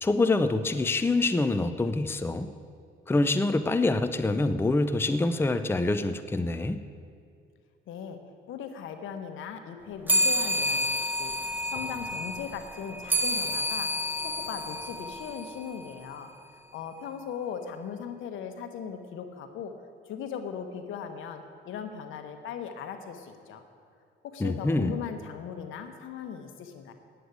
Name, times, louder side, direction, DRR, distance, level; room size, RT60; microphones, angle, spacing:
voice 1, 0.0-2.5 3.1-6.8 24.4-25.0, left 2 dB, 10° left, 10 dB, 0.5 m, -25 dB
voice 2, 7.9-8.2 8.5-13.9 14.2-16.3 16.7-19.7 20.0-23.6 24.2-26.9, left 7 dB, 80° left, 7 dB, 1.1 m, -38 dB
sound 1, 10.1-15.9, equal, 10° right, 1.0 m, -29 dB
9.4 x 8.0 x 8.2 m, 2.4 s
cardioid pair, 90°, 20 cm